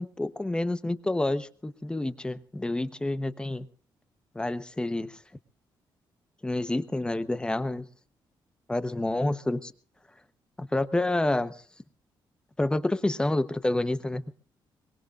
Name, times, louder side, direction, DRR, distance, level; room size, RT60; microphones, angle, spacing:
voice 1, 0.0-3.7 4.3-5.2 6.4-7.9 8.7-9.7 10.6-11.6 12.6-14.3, left 2 dB, 10° left, 13 dB, 0.9 m, -28 dB
23.0 x 21.5 x 2.5 m, 0.41 s
cardioid pair, 130°, 8 cm